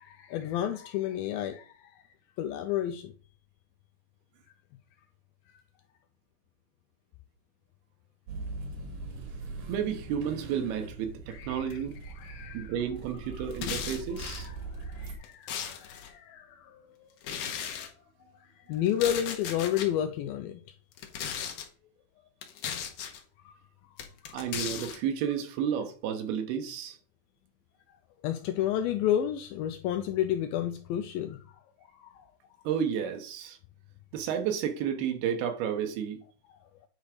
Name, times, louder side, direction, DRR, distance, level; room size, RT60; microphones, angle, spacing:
voice 1, 0.0-2.0 2.4-3.1 5.5-5.6 11.3-11.8 12.0-12.8 13.4-13.5 14.4-17.1 17.6-17.9 18.4-20.6 23.4-23.5 24.2-24.4 28.2-31.4 31.8-32.3, left 11 dB, 85° left, 2.1 m, -32 dB
sound 1, 8.3-15.2, right 3 dB, 55° right, 2.2 m, -41 dB
voice 2, 9.7-12.0 12.5-14.5 24.3-27.0 32.6-33.6 34.1-36.2, right 8 dB, 75° right, 2.9 m, -31 dB
sound 2, 13.5-14.5 15.1-16.1 17.2-17.9 18.9-19.9 20.9-21.7 22.4-23.2 24.0-25.0, left 8 dB, 70° left, 2.1 m, -36 dB
9.4 x 4.0 x 4.9 m
omnidirectional pair, 4.7 m